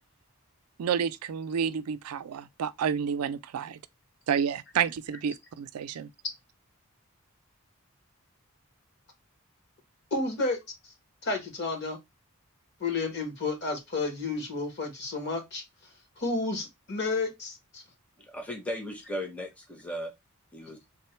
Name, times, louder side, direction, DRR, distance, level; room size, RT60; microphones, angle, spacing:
voice 1, 0.8-3.8 4.3-6.1, right 7 dB, 85° right, 0.4 m, -30 dB
voice 2, 10.1-10.6 11.2-12.0 12.8-15.6 16.2-17.8, left 3 dB, 50° left, 1.2 m, -31 dB
voice 3, 18.2-20.1 20.5-20.8, equal, 5° left, 0.6 m, -36 dB
3.5 x 2.2 x 4.2 m
head